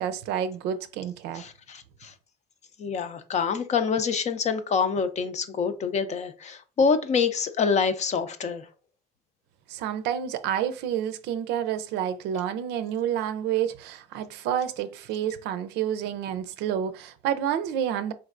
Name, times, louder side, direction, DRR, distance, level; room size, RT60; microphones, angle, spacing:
voice 1, 0.0-1.4 9.7-18.1, right 9 dB, 90° right, 0.5 m, -29 dB
voice 2, 1.3-2.1 2.8-8.7, left 5 dB, 45° left, 0.6 m, -26 dB
4.4 x 3.2 x 2.4 m
cardioid pair, 110°, 17 cm